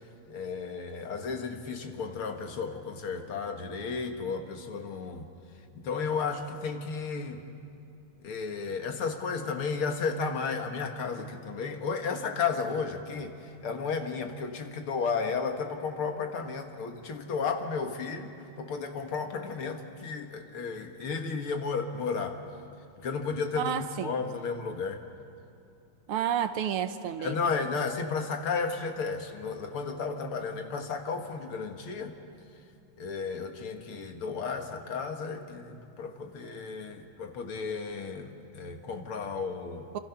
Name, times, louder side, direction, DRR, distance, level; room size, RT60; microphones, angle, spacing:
voice 1, 0.3-5.3 5.7-7.4 8.2-22.4 23.0-25.0 27.2-32.2 33.0-39.9, left 5 dB, 75° left, 5 dB, 2.5 m, -33 dB
voice 2, 23.6-24.1 26.1-27.4 39.9-40.0, right 9 dB, 80° right, 10 dB, 1.8 m, -30 dB
28.0 x 25.5 x 5.9 m, 2.7 s
omnidirectional pair, 2.4 m